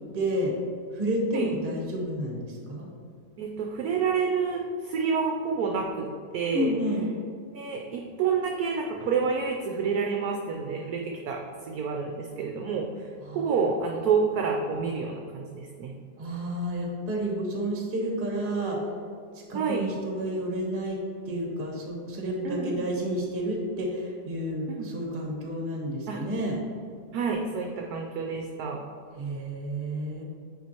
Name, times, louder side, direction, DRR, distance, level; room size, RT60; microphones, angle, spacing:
voice 1, 0.1-0.5 0.9-2.9 6.5-7.0 13.2-13.4 16.2-18.9 19.3-21.0 21.2-26.6 29.2-30.2, equal, 35° right, -1 dB, 1.2 m, -30 dB
voice 2, 3.4-6.1 6.3-6.7 7.5-15.9 19.5-19.8 22.4-22.9 24.7-24.9 26.1-26.2 27.1-28.8, right 5 dB, 70° right, 1 dB, 1.0 m, -28 dB
9.2 x 4.5 x 2.9 m, 2.3 s
omnidirectional pair, 1.9 m